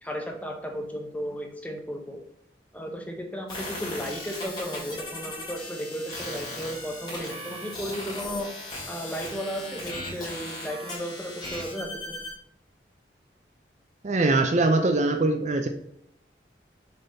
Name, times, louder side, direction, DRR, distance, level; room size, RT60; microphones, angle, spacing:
voice 1, 0.0-2.2 2.7-8.5 8.9-12.2, equal, 10° left, 3 dB, 0.9 m, -34 dB
sound 1, 3.5-12.3, left 1 dB, 25° left, 2.8 m, -37 dB
voice 2, 14.0-15.7, right 2 dB, 40° right, 6 dB, 0.5 m, -22 dB
6.6 x 4.4 x 3.9 m, 0.71 s
head